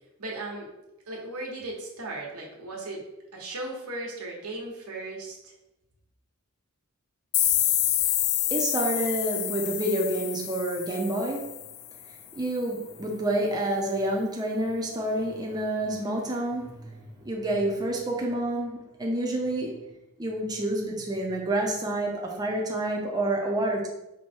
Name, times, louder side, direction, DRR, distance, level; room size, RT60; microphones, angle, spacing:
voice 1, 0.2-0.7 1.1-3.0 3.3-5.4, right 2 dB, 90° right, -2 dB, 1.1 m, -36 dB
sound 1, 7.3-12.0, left 13 dB, 75° left, 0.3 m, -28 dB
voice 2, 8.5-11.5 12.1-19.9 20.2-23.9, right 1 dB, 20° right, -1 dB, 0.5 m, -28 dB
4.6 x 2.2 x 4.3 m, 0.92 s
head